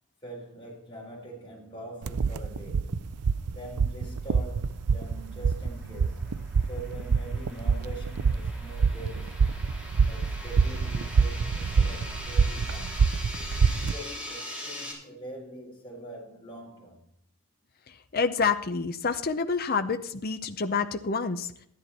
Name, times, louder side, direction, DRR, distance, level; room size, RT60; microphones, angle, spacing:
voice 1, 0.2-3.1 3.5-6.2 6.6-9.6 10.0-13.2 13.8-17.0, right 1 dB, 20° left, 4.5 m, -43 dB
sound 1, 2.0-13.9, right 5 dB, 85° right, 0.5 m, -26 dB
sound 2, 4.5-14.9, left 1 dB, 5° right, 3.8 m, -42 dB
voice 2, 18.1-21.5, left 5 dB, 40° left, 0.7 m, -28 dB
13.5 x 10.5 x 4.3 m
head